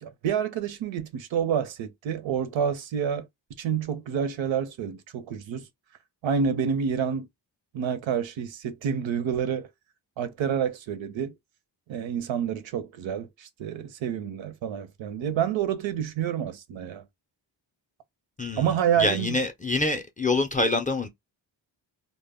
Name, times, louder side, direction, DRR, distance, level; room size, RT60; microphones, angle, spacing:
voice 1, 0.0-3.3 3.6-5.7 6.2-7.3 7.7-9.7 10.2-11.3 11.9-17.1 18.6-19.4, right 8 dB, 80° right, 0.6 m, -28 dB
voice 2, 18.4-21.1, left 2 dB, 20° left, 0.3 m, -26 dB
2.1 x 2.1 x 3.4 m
wide cardioid pair, 140°, 45 cm